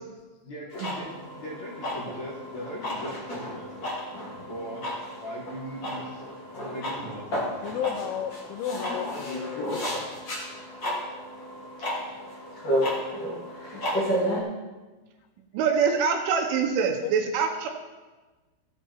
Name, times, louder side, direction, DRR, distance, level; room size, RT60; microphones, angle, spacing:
voice 1, 0.4-3.7 4.3-4.9 5.2-8.1, equal, 55° left, -4 dB, 2.1 m, -40 dB
sound 1, 0.7-14.4, equal, 40° left, 1.7 m, -32 dB
voice 2, 7.6-10.2 17.0-17.1, left 9 dB, 90° left, 10 dB, 3.5 m, -33 dB
voice 3, 15.5-17.7, right 6 dB, 75° right, 3 dB, 3.2 m, -24 dB
16.0 x 8.3 x 4.5 m, 1.2 s
omnidirectional pair, 6.0 m